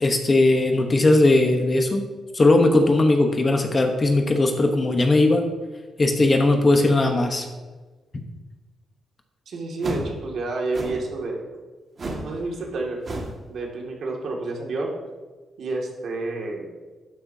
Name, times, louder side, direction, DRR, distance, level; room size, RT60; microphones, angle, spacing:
voice 1, 0.0-2.0 2.3-5.5 6.0-7.5, left 2 dB, 25° left, 4 dB, 1.0 m, -18 dB
voice 2, 9.5-11.4 12.2-13.0 13.5-14.9 15.6-16.7, right 3 dB, 60° right, -1 dB, 2.1 m, -29 dB
sound 1, 9.8-10.1 10.7-11.1 12.0-12.3 12.6-12.7 13.0-13.4, right 1 dB, 35° right, 1.8 m, -31 dB
12.0 x 10.0 x 2.8 m, 1.3 s
wide cardioid pair, 155°, 0 cm